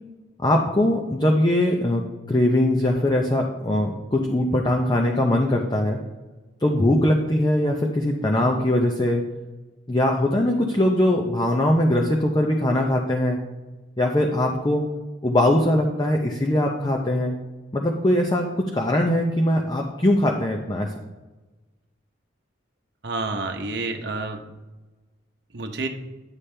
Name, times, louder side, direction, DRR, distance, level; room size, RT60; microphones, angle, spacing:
voice 1, 0.4-2.0 2.3-6.0 6.6-9.2 9.9-13.4 14.0-14.8 15.2-17.4 17.7-18.5 18.7-20.9, left 1 dB, 20° left, 1 dB, 0.6 m, -21 dB
voice 2, 23.0-24.5 25.5-25.9, right 3 dB, 60° right, 4 dB, 0.8 m, -29 dB
9.9 x 7.1 x 3.3 m, 1.2 s
head